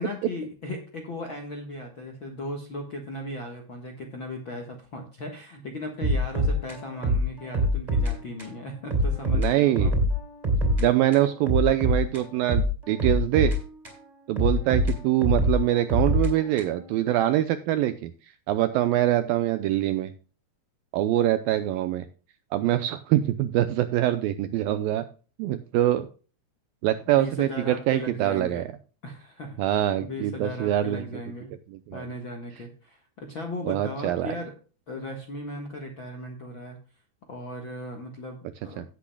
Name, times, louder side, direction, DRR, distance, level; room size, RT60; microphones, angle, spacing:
voice 1, 0.0-9.9 27.1-28.6 29.0-31.5 31.9-34.5 34.9-36.8 37.3-38.8, left 1 dB, 60° left, 2 dB, 1.3 m, -37 dB
sound 1, 6.0-8.1 8.4-8.5 8.9-10.9 11.1-14.0 14.4-16.9, equal, 10° right, 3.5 m, -25 dB
voice 2, 9.3-9.9 10.8-13.5 14.3-18.1 18.5-20.1 20.9-22.1 22.5-25.1 25.4-26.1 26.8-28.6 29.6-31.1 31.7-32.0 33.7-34.4 38.8-38.9, right 13 dB, 85° right, 11 dB, 2.1 m, -24 dB
17.5 x 8.5 x 2.3 m, 0.37 s
omnidirectional pair, 4.7 m